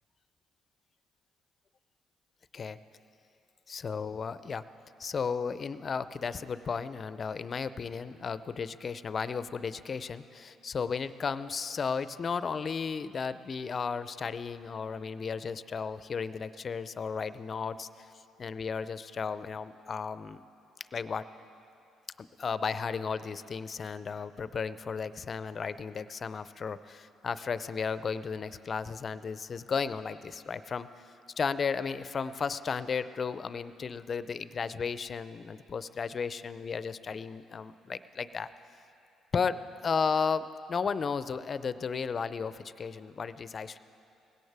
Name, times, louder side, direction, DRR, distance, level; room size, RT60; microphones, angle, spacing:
voice 1, 3.7-4.6 5.0-17.9 18.4-20.4 20.9-21.3 22.2-30.9 31.4-38.5 39.3-43.8, left 5 dB, 45° left, 14 dB, 0.5 m, -34 dB
20.0 x 17.0 x 3.5 m, 2.7 s
supercardioid pair, 60°, 0 cm